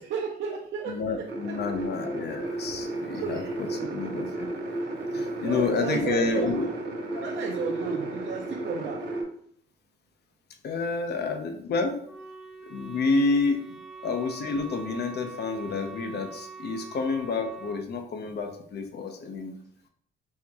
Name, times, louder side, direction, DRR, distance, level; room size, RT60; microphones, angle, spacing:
voice 1, 0.0-1.6 3.2-4.0 5.1-6.7 7.1-9.0, right 5 dB, 75° right, -2 dB, 0.7 m, -33 dB
voice 2, 0.9-4.5 5.1-6.6 7.2-7.3 10.6-12.0 12.7-13.6 14.0-19.5, left 4 dB, 55° left, 5 dB, 0.7 m, -29 dB
sound 1, 1.3-9.2, right 2 dB, 55° right, 1.1 m, -33 dB
Wind instrument woodwind instrument, 12.0-17.8, right 5 dB, ahead, 0.6 m, -43 dB
4.4 x 2.9 x 3.5 m, 0.64 s
cardioid pair, 90°, 20 cm